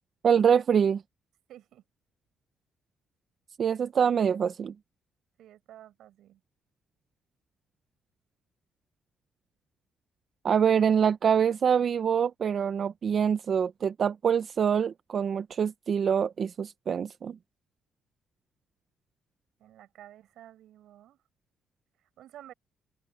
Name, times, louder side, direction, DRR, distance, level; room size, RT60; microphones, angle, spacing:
voice 1, 0.2-1.0 3.6-4.7 10.4-17.4, right 7 dB, 55° right, 0.7 m, -25 dB
voice 2, 1.5-1.8 5.4-6.4 19.6-21.2 22.2-22.5, right 12 dB, 80° right, 6.9 m, -51 dB
open air
cardioid pair, 90°, 0 cm